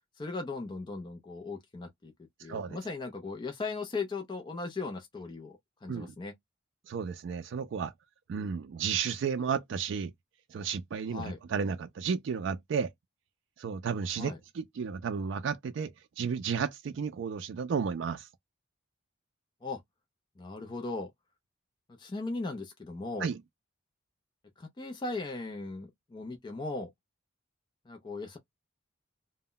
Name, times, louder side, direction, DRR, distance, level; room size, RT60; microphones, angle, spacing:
voice 1, 0.2-6.3 11.1-11.4 14.2-14.4 19.6-19.8 20.4-21.1 22.0-23.3 24.6-26.9 27.9-28.4, left 3 dB, 25° left, 0.4 m, -38 dB
voice 2, 2.5-2.8 5.9-6.1 6.9-7.9 8.3-10.1 10.5-12.9 13.6-15.9 16.2-18.3 23.2-23.4, right 6 dB, 65° right, 0.3 m, -33 dB
2.1 x 2.0 x 3.7 m
head